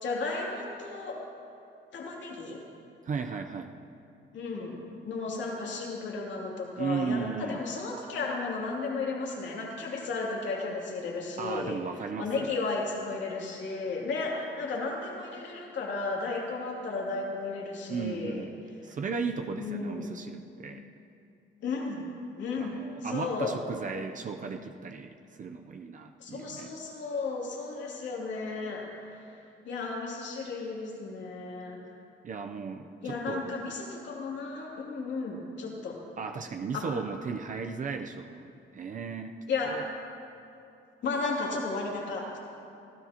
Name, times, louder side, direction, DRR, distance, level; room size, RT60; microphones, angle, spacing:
voice 1, 0.0-1.2 1.9-2.6 4.3-11.8 12.2-18.4 19.6-20.2 21.6-22.1 22.4-22.8 23.0-23.6 26.2-29.3 29.6-31.8 33.0-36.0 36.7-36.9 39.5-39.8 41.0-42.4, left 3 dB, 70° left, -2 dB, 2.8 m, -34 dB
voice 2, 3.0-3.7 6.8-7.6 11.4-12.5 17.9-18.5 18.8-20.8 22.6-26.7 32.2-33.5 36.2-39.8, right 5 dB, 40° right, 5 dB, 0.6 m, -35 dB
25.0 x 16.0 x 2.9 m, 2.7 s
cardioid pair, 160°, 20 cm